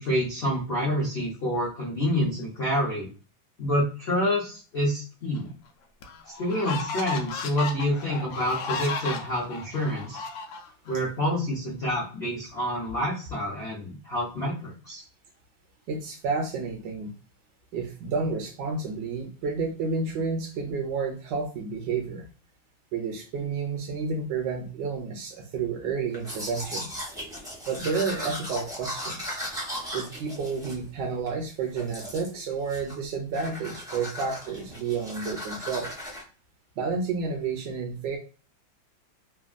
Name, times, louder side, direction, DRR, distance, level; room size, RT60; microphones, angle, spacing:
voice 1, 0.0-3.1 3.6-5.5 6.4-10.2 10.8-15.0, equal, 60° left, -6 dB, 0.6 m, -28 dB
sound 1, 5.4-5.5 6.0-11.0, left 4 dB, 75° left, 1.2 m, -34 dB
voice 2, 15.9-17.1 17.7-22.2 22.9-26.9 27.7-29.4 29.9-35.9 36.8-38.2, right 4 dB, 75° right, 3 dB, 1.1 m, -30 dB
Domestic sounds home sounds, 26.1-31.4 31.8-32.4 32.7-33.1 33.3-36.2, equal, 5° right, 0.4 m, -37 dB
3.4 x 2.2 x 2.4 m, 0.36 s
omnidirectional pair, 2.1 m